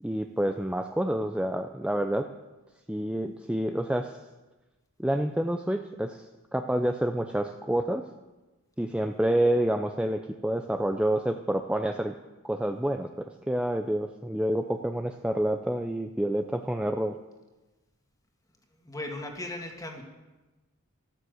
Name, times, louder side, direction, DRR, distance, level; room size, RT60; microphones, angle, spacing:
voice 1, 0.0-2.3 2.9-4.2 5.0-6.3 6.5-8.0 8.8-12.1 12.4-17.1, right 1 dB, 5° right, 5 dB, 0.5 m, -28 dB
voice 2, 18.8-20.0, left 1 dB, 15° left, 2 dB, 2.0 m, -37 dB
13.0 x 12.5 x 7.8 m, 1.2 s
head